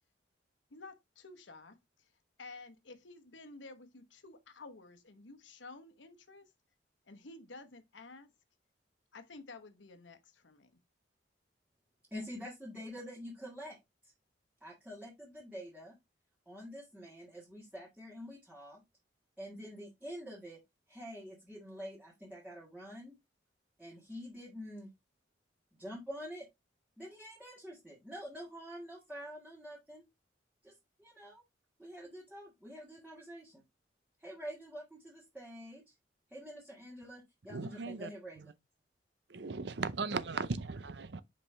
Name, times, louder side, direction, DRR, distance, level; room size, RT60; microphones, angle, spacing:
voice 1, 0.7-2.1 2.4-6.5 7.1-8.3 9.1-10.8, left 3 dB, 85° left, 1.0 m, -52 dB
voice 2, 12.1-13.8 14.6-16.0 16.5-18.8 19.4-20.6 20.9-23.1 23.8-24.9 25.8-26.5 27.0-30.0 30.6-30.7 31.0-31.4 31.8-33.6 34.2-35.9 36.3-38.4, equal, 5° right, 1.7 m, -47 dB
voice 3, 37.5-38.1 38.4-38.5 39.3-41.2, right 4 dB, 65° right, 0.6 m, -37 dB
5.4 x 5.3 x 3.3 m
head